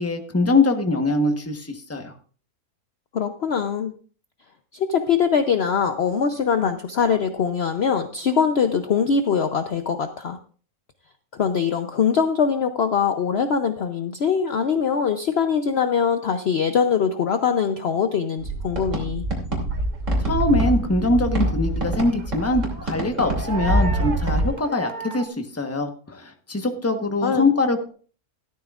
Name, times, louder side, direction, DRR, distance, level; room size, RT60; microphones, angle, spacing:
voice 1, 0.0-2.1 20.2-27.9, left 2 dB, 10° left, 5 dB, 1.0 m, -23 dB
voice 2, 3.1-3.9 4.7-10.4 11.3-19.2 27.2-27.5, left 6 dB, 55° left, 7 dB, 0.8 m, -22 dB
sound 1, 18.4-24.5, right 1 dB, 55° right, 3.2 m, -25 dB
sound 2, 19.7-20.5 21.0-25.3, right 4 dB, 35° right, 1.1 m, -35 dB
14.5 x 12.5 x 2.4 m, 0.41 s
omnidirectional pair, 1.6 m